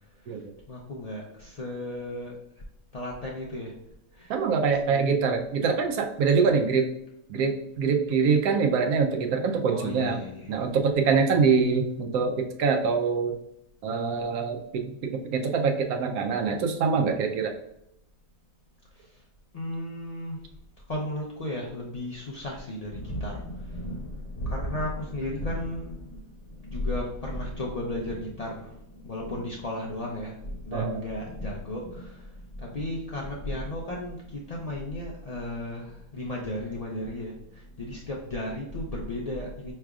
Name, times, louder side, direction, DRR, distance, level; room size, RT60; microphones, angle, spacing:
voice 1, 0.7-2.4 2.9-3.7 4.1-4.4 4.7-5.2 9.7-10.7 11.1-11.4 18.9-19.2 19.5-20.5 20.9-39.7, left 1 dB, 85° left, -3 dB, 0.3 m, -34 dB
voice 2, 4.3-6.9 7.3-10.2 10.5-13.4 13.8-17.5 30.7-31.0, right 5 dB, 85° right, 4 dB, 1.1 m, -24 dB
4.8 x 3.3 x 2.3 m, 0.79 s
omnidirectional pair, 1.5 m